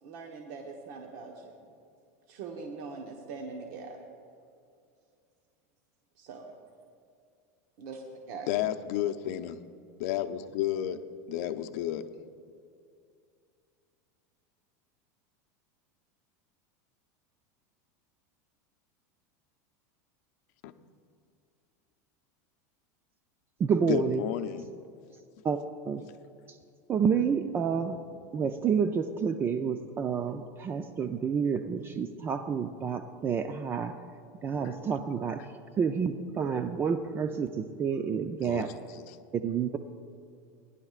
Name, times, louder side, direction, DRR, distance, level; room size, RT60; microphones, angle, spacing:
voice 1, 0.0-1.6 2.3-4.0 6.3-6.5 7.8-8.5, right 4 dB, 60° right, 1 dB, 1.1 m, -42 dB
voice 2, 8.5-9.6 10.0-11.0 11.3-12.0 20.6-20.7 23.9-24.6 38.4-38.7 38.9-39.2, left 12 dB, 65° left, 8 dB, 0.6 m, -31 dB
voice 3, 23.6-24.3 25.4-25.6 25.8-26.1 26.5-26.6 26.9-28.0 28.3-34.0 34.4-38.7 39.3-39.8, right 6 dB, 25° right, 8 dB, 0.4 m, -29 dB
19.0 x 11.0 x 2.4 m, 2.4 s
supercardioid pair, 130°, 9 cm